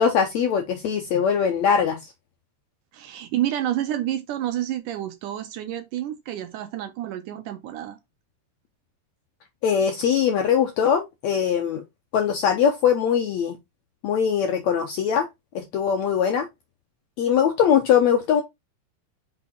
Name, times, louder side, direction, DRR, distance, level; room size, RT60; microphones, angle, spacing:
voice 1, 0.0-2.0 9.6-11.8 12.1-13.6 14.0-15.3 15.5-16.5 17.2-18.4, left 7 dB, 75° left, 1.7 m, -21 dB
voice 2, 2.9-8.0, right 12 dB, 75° right, 2.1 m, -29 dB
5.6 x 4.3 x 4.2 m
omnidirectional pair, 4.1 m